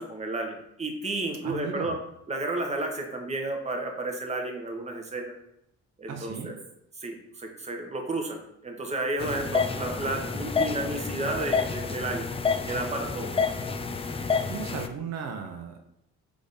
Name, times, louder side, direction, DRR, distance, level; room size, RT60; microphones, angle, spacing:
voice 1, 0.0-2.0 2.3-5.3 6.0-6.6 7.0-12.3 12.7-13.3, right 2 dB, 20° right, 2 dB, 0.9 m, -32 dB
voice 2, 1.4-2.0 6.1-6.5 14.5-15.8, right 6 dB, 60° right, 3 dB, 0.7 m, -36 dB
sound 1, 9.2-14.9, left 5 dB, 20° left, 0.4 m, -29 dB
3.6 x 3.5 x 4.0 m, 0.77 s
cardioid pair, 90°, 30 cm